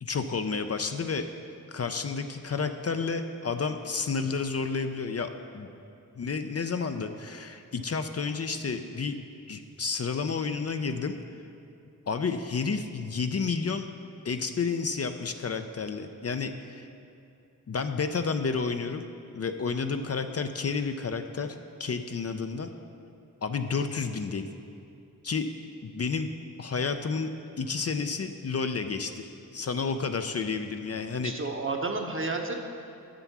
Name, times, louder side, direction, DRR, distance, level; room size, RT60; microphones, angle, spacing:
voice 1, 0.0-1.2 1.7-5.7 6.2-9.2 9.5-11.1 12.1-13.9 14.2-16.9 17.7-19.0 19.3-22.7 23.4-24.4 25.2-25.5 25.8-26.3 26.6-27.3 27.6-31.3, left 5 dB, 45° left, 7 dB, 0.5 m, -31 dB
voice 2, 31.2-32.6, right 3 dB, 35° right, 3 dB, 1.0 m, -31 dB
7.6 x 7.0 x 6.0 m, 2.6 s
cardioid pair, 50°, 35 cm